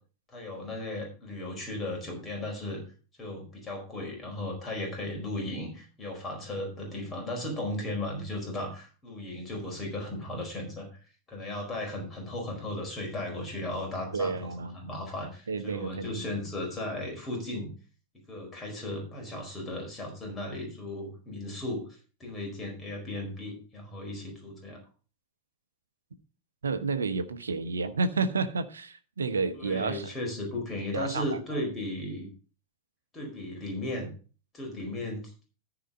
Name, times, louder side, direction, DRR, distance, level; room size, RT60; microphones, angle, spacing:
voice 1, 0.3-2.8 3.2-10.9 11.3-17.7 18.3-24.8 29.6-32.3 33.1-34.1 34.5-35.4, left 1 dB, 20° left, 4.6 m, -36 dB
voice 2, 14.1-14.9 15.5-16.2 26.6-30.1 30.9-31.2 31.5-31.6, right 4 dB, 70° right, 1.0 m, -30 dB
14.0 x 5.0 x 5.3 m
figure-of-eight pair, 90°, 0 cm